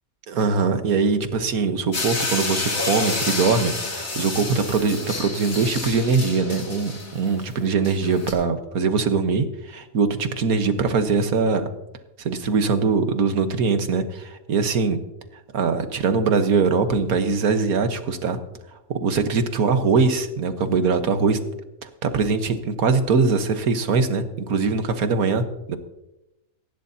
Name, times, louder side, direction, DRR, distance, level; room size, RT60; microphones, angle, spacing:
voice 1, 0.3-11.7 12.2-15.0 15.5-18.4 18.9-21.4 21.8-25.8, right 4 dB, 75° right, 8 dB, 1.7 m, -22 dB
sound 1, 1.9-8.3, left 3 dB, 65° left, 2.9 m, -29 dB
18.5 x 15.5 x 2.8 m, 0.91 s
omnidirectional pair, 1.5 m